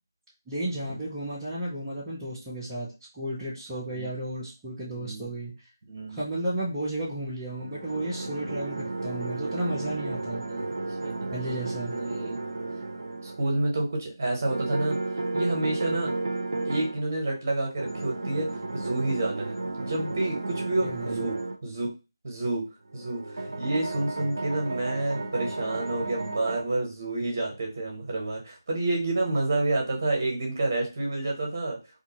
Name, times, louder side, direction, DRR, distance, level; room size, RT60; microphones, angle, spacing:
voice 1, 0.5-5.5 6.1-10.4 11.3-12.0 20.8-21.2, right 1 dB, 10° right, -11 dB, 0.6 m, -33 dB
voice 2, 4.9-5.3 5.9-6.2 10.5-10.7 11.0-11.3 11.9-12.4 13.2-16.1 16.6-21.9 22.2-22.7 22.9-31.8, right 2 dB, 40° right, 0 dB, 1.0 m, -29 dB
sound 1, 7.5-13.6 14.5-17.0 17.8-21.6 22.9-26.6, right 2 dB, 65° right, 0.5 m, -33 dB
2.6 x 2.5 x 2.8 m, 0.29 s
figure-of-eight pair, 160°, 2 cm